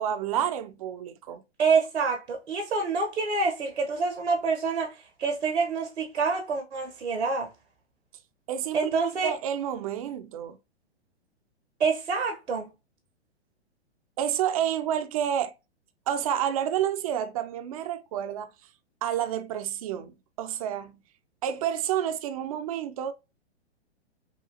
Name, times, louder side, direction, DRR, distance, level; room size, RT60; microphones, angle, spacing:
voice 1, 0.0-1.4 8.5-10.6 14.2-15.5 16.1-18.5 19.0-21.0 21.4-23.1, right 10 dB, 35° right, 0.4 m, -29 dB
voice 2, 1.6-4.9 5.2-7.5 8.7-9.3 11.8-12.7, right 4 dB, 75° right, 1.0 m, -27 dB
5.6 x 2.4 x 2.6 m
figure-of-eight pair, 115°, 34 cm